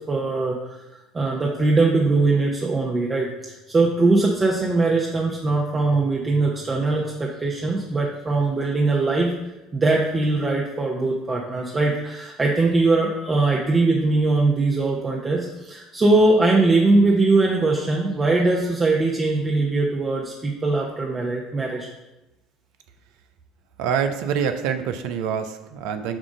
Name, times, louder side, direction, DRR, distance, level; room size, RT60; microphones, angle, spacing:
voice 1, 0.1-0.8 1.1-9.3 9.7-21.9, right 3 dB, 25° right, -1 dB, 0.9 m, -21 dB
voice 2, 23.8-26.2, right 7 dB, 65° right, 8 dB, 0.5 m, -25 dB
7.3 x 2.5 x 5.0 m, 0.98 s
hypercardioid pair, 65°, 0 cm